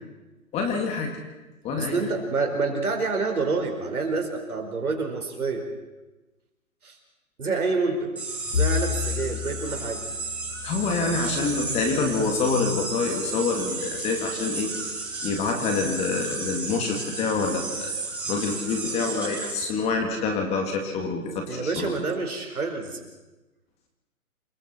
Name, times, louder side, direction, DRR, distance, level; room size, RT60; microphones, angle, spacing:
voice 1, 0.5-1.1 1.6-2.0 10.6-14.7 15.2-17.9 18.3-21.9, left 4 dB, 15° left, 3 dB, 2.0 m, -26 dB
voice 2, 1.8-5.6 6.8-7.0 7.4-8.1 8.5-10.0 21.5-23.0, right 4 dB, 85° right, 3 dB, 4.5 m, -27 dB
sound 1, 8.2-19.7, right 3 dB, 5° right, 5.0 m, -33 dB
Bowed string instrument, 8.5-12.9, left 8 dB, 75° left, 2.7 m, -32 dB
28.0 x 24.0 x 4.3 m, 1.1 s
hypercardioid pair, 150°, 43 cm